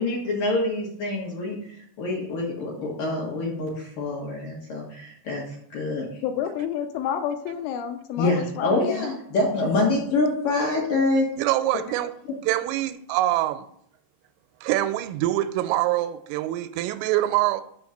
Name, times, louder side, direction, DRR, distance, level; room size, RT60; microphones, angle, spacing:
voice 1, 0.0-1.6 2.0-5.4 5.7-6.1 8.2-11.3, left 2 dB, 60° left, -3 dB, 2.4 m, -25 dB
voice 2, 6.2-9.1, left 9 dB, 80° left, 6 dB, 3.0 m, -29 dB
voice 3, 11.4-12.1 12.4-13.7 14.6-17.6, right 14 dB, 85° right, 10 dB, 3.1 m, -24 dB
7.1 x 5.1 x 6.4 m, 0.68 s
omnidirectional pair, 5.8 m